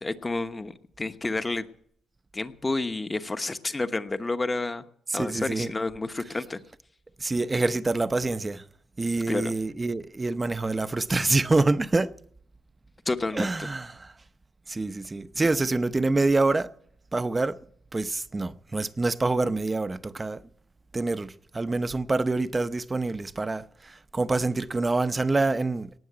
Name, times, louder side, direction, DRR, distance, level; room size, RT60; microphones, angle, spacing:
voice 1, 0.0-1.7 2.3-4.8 5.1-6.6 9.3-9.5 13.1-13.7, left 2 dB, 20° left, 1.1 m, -30 dB
voice 2, 5.1-5.7 7.2-8.6 9.0-12.1 13.3-14.1 14.7-16.7 17.1-17.6 17.9-20.4 20.9-25.9, right 3 dB, 20° right, 0.8 m, -26 dB
18.5 x 7.2 x 9.4 m
cardioid pair, 90°, 0 cm